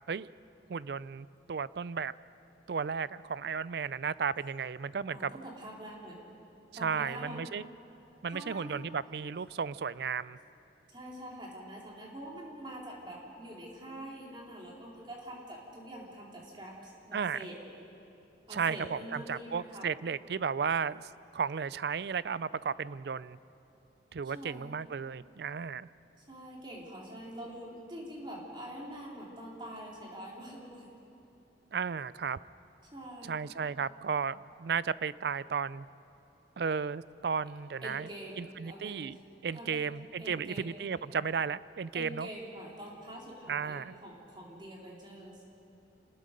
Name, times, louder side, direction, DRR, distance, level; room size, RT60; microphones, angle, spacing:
voice 1, 0.7-2.1 2.7-5.3 6.8-7.7 8.2-10.4 17.1-17.4 18.5-23.4 24.1-25.9 31.7-32.4 33.2-35.9 36.6-38.1 38.4-39.2 39.4-42.3 43.5-43.9, right 6 dB, 60° right, 18 dB, 0.4 m, -34 dB
voice 2, 5.1-6.2 6.7-7.4 8.3-8.8 10.9-17.5 18.5-19.9 24.2-24.7 26.3-30.9 32.9-33.4 37.8-39.1 39.5-39.9 40.2-40.8 41.9-45.4, right 1 dB, 25° right, -3 dB, 3.8 m, -45 dB
27.5 x 19.5 x 5.3 m, 2.9 s
head